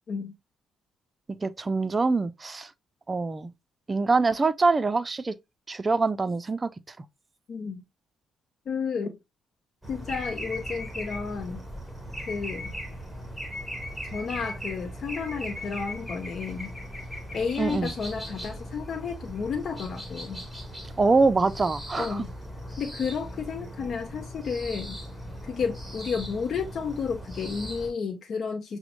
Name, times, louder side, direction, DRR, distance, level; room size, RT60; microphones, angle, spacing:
voice 1, 1.3-2.7 3.1-3.5 3.9-5.3 5.7-7.0 17.6-17.9 21.0-22.2, right 3 dB, 25° right, 0.4 m, -24 dB
voice 2, 7.5-7.8 8.7-9.2 9.9-11.6 12.2-12.7 14.0-16.7 17.3-20.4 22.0-22.3 22.8-25.0 25.4-28.8, left 5 dB, 55° left, 0.6 m, -32 dB
sound 1, 9.8-27.9, equal, ahead, 1.5 m, -38 dB
5.9 x 2.1 x 2.9 m
cardioid pair, 90°, 0 cm